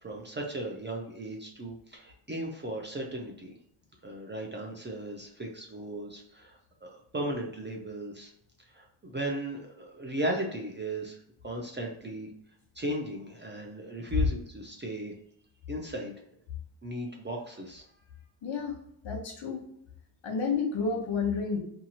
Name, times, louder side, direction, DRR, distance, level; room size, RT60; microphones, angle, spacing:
voice 1, 0.0-3.5 4.0-8.3 8.7-11.2 11.4-12.3 12.8-15.1 15.7-16.1 16.8-17.8, right 1 dB, 25° right, 0 dB, 0.5 m, -36 dB
voice 2, 18.4-18.7 19.0-19.6 20.2-21.6, left 5 dB, 65° left, 1 dB, 1.0 m, -30 dB
2.7 x 2.4 x 2.8 m, 0.73 s
cardioid pair, 105°, 49 cm